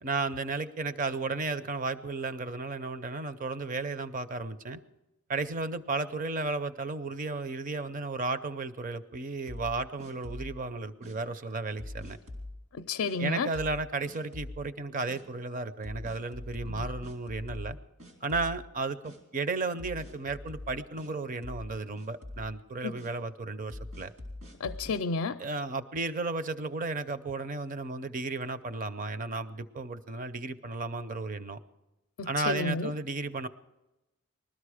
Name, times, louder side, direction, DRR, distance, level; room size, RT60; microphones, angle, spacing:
voice 1, 0.0-4.8 5.3-12.2 13.2-17.8 18.2-24.1 25.4-31.6 32.3-33.5, right 3 dB, 40° right, 0.6 m, -34 dB
sound 1, 9.5-10.6 11.0-11.2 11.8-12.5 13.0-13.2 13.5-13.8 14.1-14.6 15.1-15.2 15.8-17.7 18.0-18.7 19.0-19.2 19.8-21.1 21.4-21.7 22.0-22.5 23.0-23.1 23.7-25.0, left 1 dB, 85° right, 3.4 m, -42 dB
voice 2, 12.9-13.5 22.8-22.9 24.6-25.4 32.2-32.9, left 4 dB, 75° left, 0.4 m, -31 dB
20.5 x 13.0 x 4.9 m
head